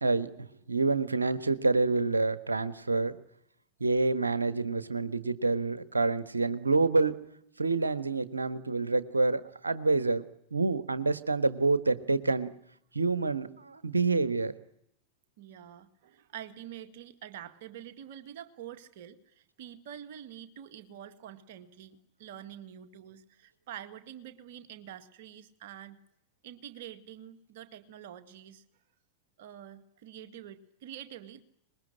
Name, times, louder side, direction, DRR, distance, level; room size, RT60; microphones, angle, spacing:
voice 1, 0.0-3.2 3.8-7.2 7.6-10.2 10.5-12.5 12.9-14.5, right 3 dB, 80° right, 13 dB, 1.3 m, -27 dB
voice 2, 15.4-26.0 26.4-28.6 29.4-31.4, right 10 dB, 55° right, 9 dB, 1.8 m, -46 dB
25.0 x 20.5 x 10.0 m, 0.77 s
figure-of-eight pair, 90°, 0 cm